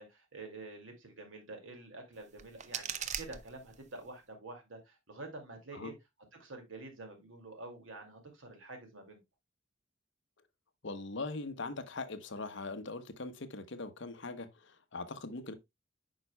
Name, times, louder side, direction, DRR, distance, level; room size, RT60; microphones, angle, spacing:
voice 1, 0.0-5.9 6.4-9.2, right 2 dB, 75° right, 2.3 m, -48 dB
sound 1, 2.1-4.1, right 8 dB, 35° right, 0.5 m, -41 dB
voice 2, 10.8-15.5, left 3 dB, 65° left, 0.9 m, -41 dB
8.9 x 5.4 x 2.2 m
head